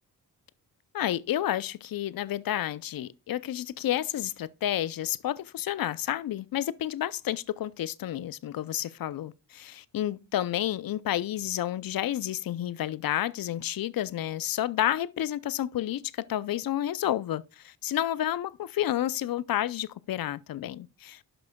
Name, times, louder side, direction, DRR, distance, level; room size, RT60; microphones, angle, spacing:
voice 1, 0.9-21.2, left 12 dB, 55° left, 0.5 m, -30 dB
11.5 x 6.0 x 2.2 m
supercardioid pair, 45°, 42 cm